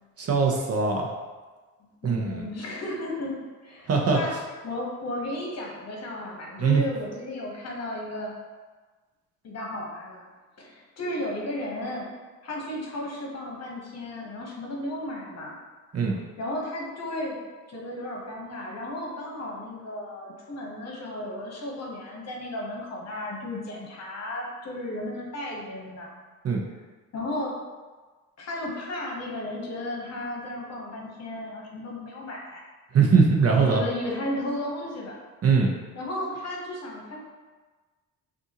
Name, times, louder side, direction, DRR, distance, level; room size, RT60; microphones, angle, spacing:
voice 1, 0.2-1.1 2.0-2.4 3.9-4.2 6.6-6.8 15.9-16.2 26.4-26.6 32.9-33.8 35.4-35.7, right 5 dB, 40° right, 0 dB, 0.7 m, -21 dB
voice 2, 1.8-4.3 4.6-8.3 9.4-10.2 10.6-12.1 12.4-15.5 16.4-17.4 17.7-26.1 27.1-27.6 28.4-32.6 33.5-35.2 35.9-37.2, left 1 dB, 40° left, -2 dB, 1.2 m, -34 dB
5.4 x 2.6 x 2.9 m, 1.3 s
supercardioid pair, 85°, 38 cm